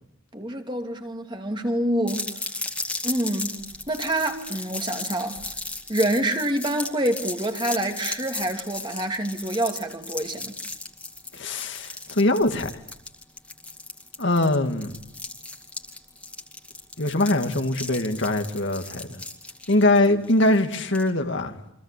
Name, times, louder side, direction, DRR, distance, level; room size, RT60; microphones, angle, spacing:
voice 1, 0.3-2.3 3.0-3.6 3.9-5.4 5.9-10.5, right 1 dB, 20° right, 2.8 m, -26 dB
sound 1, 2.1-21.1, left 2 dB, 5° left, 2.4 m, -36 dB
voice 2, 11.3-12.7 14.2-15.0 17.0-19.2 19.7-21.6, left 2 dB, 60° left, 2.1 m, -22 dB
29.0 x 25.0 x 8.3 m
head